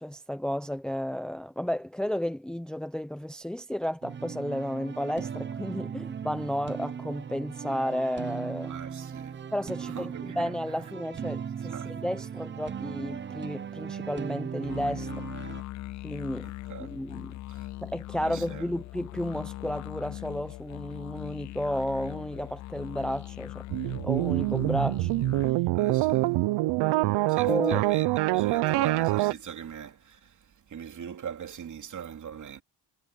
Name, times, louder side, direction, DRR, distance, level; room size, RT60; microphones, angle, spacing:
voice 1, 0.0-8.7 9.5-15.1 16.0-16.5 16.8-17.3 17.8-23.7 24.0-25.1 26.1-26.2 27.5-27.9, equal, ahead, 0.8 m, -32 dB
sound 1, 4.0-15.6, right 7 dB, 25° right, 0.8 m, -37 dB
voice 2, 8.7-9.4 9.9-10.5 11.7-12.0 16.4-16.9 17.5-17.7 18.2-18.7 25.7-26.3 27.3-30.4 30.7-32.6, right 8 dB, 45° right, 3.0 m, -41 dB
sound 2, 14.6-25.5, left 17 dB, 45° left, 0.5 m, -40 dB
sound 3, 23.7-29.3, right 19 dB, 75° right, 0.7 m, -25 dB
cardioid pair, 110°, 41 cm